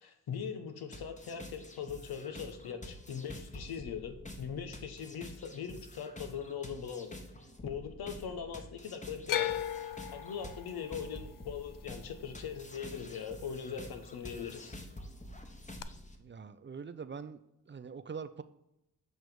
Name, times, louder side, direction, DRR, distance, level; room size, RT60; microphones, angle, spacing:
voice 1, 0.0-7.1 7.6-9.6 10.1-14.8, left 7 dB, 80° left, 7 dB, 1.0 m, -41 dB
sound 1, 0.9-16.2, left 1 dB, 20° left, 1.2 m, -48 dB
sound 2, 9.3-13.5 13.8-14.5 15.8-15.9, left 11 dB, 60° left, 0.5 m, -37 dB
voice 2, 16.2-17.4 17.7-18.4, right 6 dB, 30° right, 12 dB, 0.5 m, -43 dB
7.9 x 3.1 x 5.1 m, 0.86 s
supercardioid pair, 45°, 36 cm